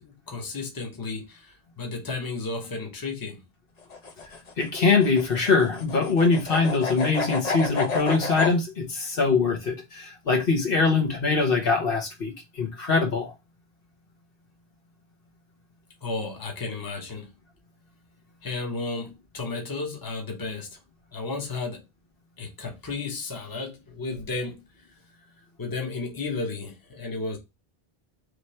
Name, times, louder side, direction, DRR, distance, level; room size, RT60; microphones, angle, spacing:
voice 1, 0.0-3.4 16.0-17.3 18.4-20.7 21.1-21.8 22.4-24.6 25.6-27.4, left 3 dB, 20° left, 0.9 m, -33 dB
sound 1, 3.8-8.6, left 4 dB, 45° left, 0.7 m, -31 dB
voice 2, 4.6-13.3, left 4 dB, 65° left, 1.3 m, -23 dB
3.3 x 3.2 x 4.3 m
omnidirectional pair, 1.0 m